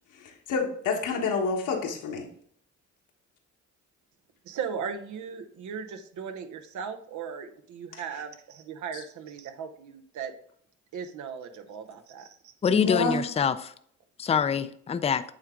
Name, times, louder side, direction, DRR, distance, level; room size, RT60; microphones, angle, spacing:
voice 1, 0.1-2.3 12.7-13.2, left 4 dB, 80° left, 1 dB, 1.4 m, -28 dB
voice 2, 4.4-10.3 10.9-12.5, right 6 dB, 75° right, 7 dB, 0.8 m, -37 dB
voice 3, 12.6-13.7 14.2-15.2, left 7 dB, 20° left, 12 dB, 0.4 m, -25 dB
8.9 x 3.5 x 3.7 m, 0.63 s
cardioid pair, 90°, 30 cm